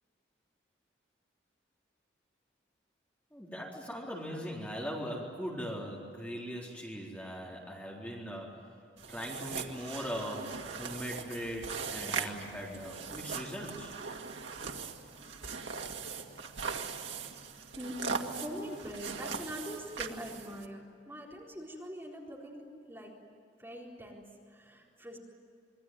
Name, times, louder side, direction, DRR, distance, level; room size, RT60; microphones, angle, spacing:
voice 1, 3.3-8.7 9.1-13.9, equal, 10° left, -3 dB, 4.0 m, -40 dB
sound 1, 9.0-20.7, right 5 dB, 85° right, 2.1 m, -40 dB
voice 2, 17.8-23.1 23.6-25.2, equal, 15° right, -3 dB, 4.2 m, -43 dB
27.0 x 22.5 x 9.4 m, 2.4 s
head